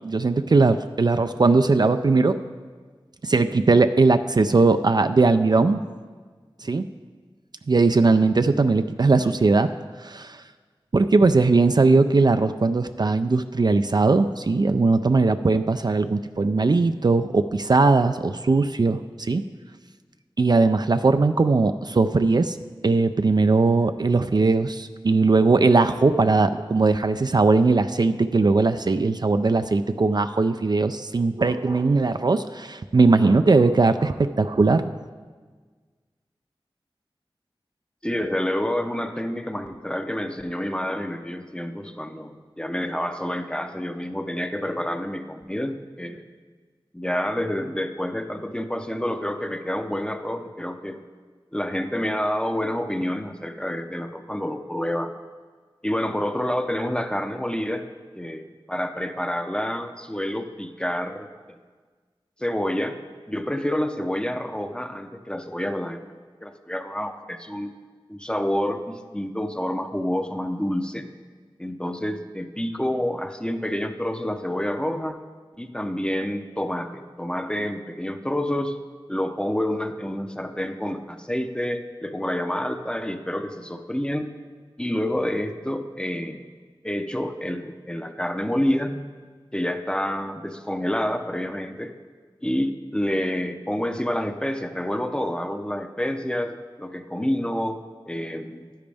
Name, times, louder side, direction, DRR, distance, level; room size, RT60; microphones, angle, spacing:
voice 1, 0.0-2.4 3.2-5.8 6.6-6.8 7.7-9.7 10.0-10.4 10.9-19.4 20.4-22.6 22.8-34.8, right 3 dB, 50° right, 9 dB, 0.4 m, -19 dB
voice 2, 38.0-46.3 46.9-51.0 51.5-55.1 55.8-57.9 58.2-61.6 62.4-63.0 63.3-66.1 66.4-67.7 68.1-71.1 71.6-75.2 75.6-78.8 79.1-84.3 84.8-86.4 86.8-89.0 89.5-91.9 92.4-98.7, left 1 dB, 10° left, 7 dB, 0.6 m, -28 dB
11.0 x 10.5 x 3.4 m, 1.5 s
wide cardioid pair, 65°, 9 cm